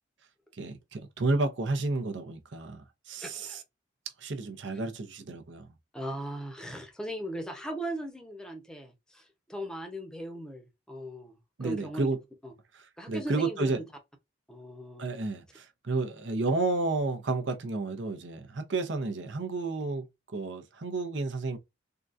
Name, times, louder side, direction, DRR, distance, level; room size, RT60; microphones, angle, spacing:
voice 1, 0.5-3.6 4.2-5.7 11.6-12.2 12.7-13.8 15.0-21.6, right 3 dB, 70° right, 0.7 m, -31 dB
voice 2, 3.2-3.6 5.9-12.1 12.4-12.5 13.0-13.8 14.5-15.3, right 1 dB, 5° left, 0.7 m, -38 dB
3.7 x 2.3 x 2.5 m
head